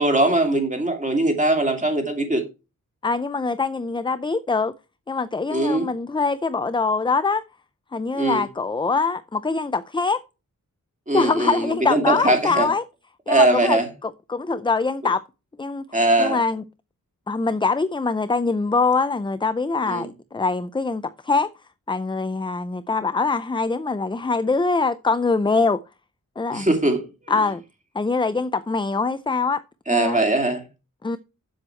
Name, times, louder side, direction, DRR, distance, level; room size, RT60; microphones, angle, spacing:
voice 1, 0.0-2.4 5.5-5.9 8.1-8.5 11.1-12.7 13.3-13.9 15.9-16.4 19.9-20.1 26.5-27.0 29.9-30.6, right 2 dB, 25° right, 2.5 m, -21 dB
voice 2, 3.0-4.7 5.1-7.4 7.9-10.2 11.1-12.8 13.3-13.8 14.3-15.2 15.6-15.8 16.2-16.6 17.3-21.5 21.9-25.8 26.4-26.7 27.3-27.6 27.9-29.6 29.9-30.2 31.0-31.2, left 4 dB, 15° left, 0.4 m, -23 dB
7.9 x 7.7 x 4.4 m
wide cardioid pair, 130°, 32 cm